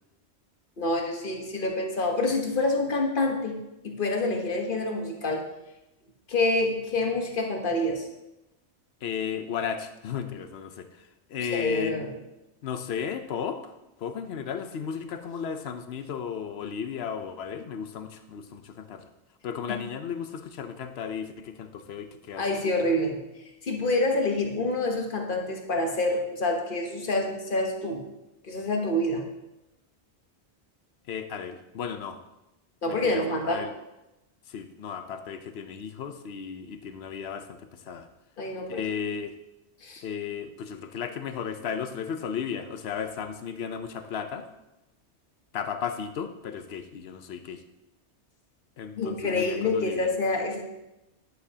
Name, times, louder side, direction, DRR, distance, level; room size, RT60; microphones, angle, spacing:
voice 1, 0.8-3.6 3.8-5.5 6.3-8.1 11.4-12.1 19.7-19.8 22.4-23.2 23.6-28.1 28.5-29.2 32.8-33.7 38.4-38.8 39.8-40.0 49.0-50.6, left 2 dB, 50° left, 3 dB, 1.3 m, -27 dB
voice 2, 9.0-12.1 12.6-13.7 14.0-19.1 19.4-22.4 31.1-32.2 32.9-33.7 34.5-38.1 38.7-39.4 40.0-44.5 45.5-47.6 48.8-50.1, left 7 dB, 65° left, 9 dB, 0.9 m, -34 dB
10.5 x 7.9 x 2.8 m, 0.95 s
omnidirectional pair, 1.2 m